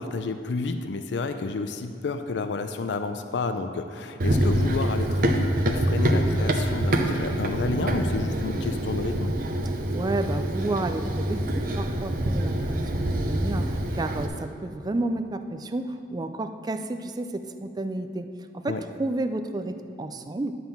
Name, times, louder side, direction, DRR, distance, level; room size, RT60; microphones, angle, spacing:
voice 1, 0.0-9.3 18.7-18.8, left 3 dB, 70° left, 9 dB, 0.4 m, -30 dB
Run, 4.2-14.3, right 1 dB, 50° right, 0.7 m, -25 dB
voice 2, 9.9-18.3 18.6-20.5, right 2 dB, 20° right, 8 dB, 0.4 m, -31 dB
11.0 x 3.8 x 7.1 m, 2.2 s
head